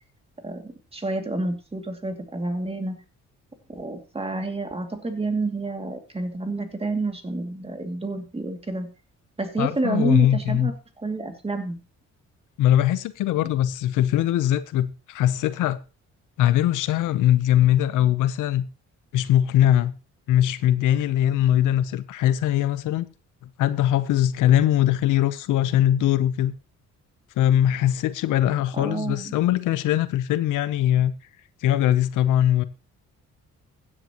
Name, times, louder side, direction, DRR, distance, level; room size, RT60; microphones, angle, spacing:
voice 1, 0.4-3.0 3.7-8.9 9.4-11.8 28.7-29.3, right 2 dB, 20° right, 2.5 m, -29 dB
voice 2, 9.6-10.7 12.6-15.8 16.4-18.6 19.1-19.9 20.3-23.1 23.6-26.5 27.4-31.1 31.6-32.6, left 12 dB, 85° left, 0.9 m, -21 dB
16.0 x 10.0 x 3.0 m
cardioid pair, 90°, 30 cm